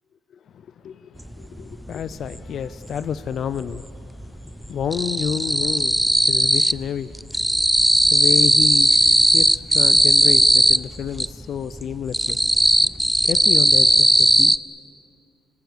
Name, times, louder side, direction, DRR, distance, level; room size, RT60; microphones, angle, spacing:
voice 1, 0.8-7.2 8.1-12.5 13.2-14.5, left 8 dB, 65° left, 14 dB, 0.6 m, -30 dB
sound 1, 1.3-1.4 1.7-3.0 3.3-6.9 7.1-11.3 11.7-14.6, right 1 dB, 5° right, 0.5 m, -17 dB
27.5 x 19.5 x 8.1 m, 2.6 s
cardioid pair, 90°, 0 cm